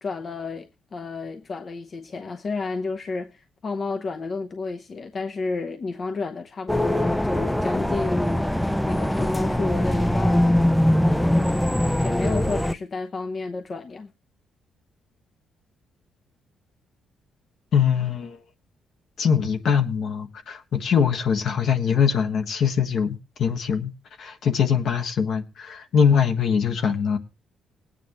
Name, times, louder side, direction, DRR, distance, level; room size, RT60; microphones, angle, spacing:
voice 1, 0.0-8.5 8.9-10.6 12.0-14.1, left 3 dB, 40° left, 0.8 m, -31 dB
sound 1, 6.7-12.7, left 1 dB, 5° left, 0.5 m, -22 dB
voice 2, 17.7-18.4 19.2-23.9 24.2-27.2, left 7 dB, 65° left, 1.4 m, -22 dB
20.0 x 9.0 x 3.0 m
cardioid pair, 115°, 0 cm